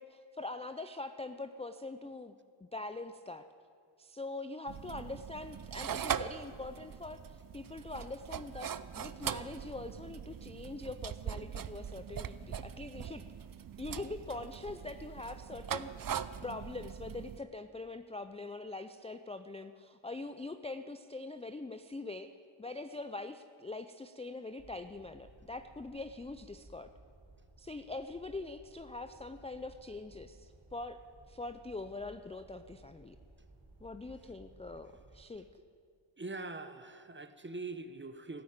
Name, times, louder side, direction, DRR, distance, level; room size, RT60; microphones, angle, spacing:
voice 1, 0.0-3.5 4.0-13.2 13.8-22.3 22.6-26.9 27.6-31.0 31.3-33.2 33.8-35.5, left 2 dB, 15° left, 9 dB, 0.4 m, -43 dB
sound 1, 4.7-17.4, right 8 dB, 45° right, 0.5 m, -41 dB
sound 2, 24.6-35.2, right 2 dB, 70° right, 4.1 m, -59 dB
voice 2, 36.2-38.4, right 3 dB, 25° right, 10 dB, 0.8 m, -43 dB
14.0 x 8.7 x 8.8 m, 2.3 s
wide cardioid pair, 65°, 49 cm